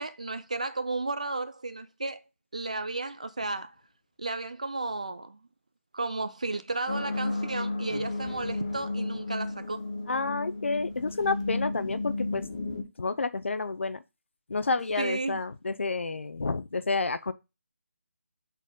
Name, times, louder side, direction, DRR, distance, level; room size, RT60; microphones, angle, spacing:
voice 1, 0.0-2.2 2.5-3.7 4.2-5.4 5.9-9.8 15.0-15.4, right 3 dB, 30° right, 0.3 m, -33 dB
sound 1, 6.9-12.8, left 2 dB, 30° left, 0.8 m, -33 dB
voice 2, 10.1-12.4 13.0-14.0 14.5-17.3, left 3 dB, 60° left, 0.6 m, -30 dB
7.2 x 4.2 x 3.7 m
hypercardioid pair, 180°, 8 cm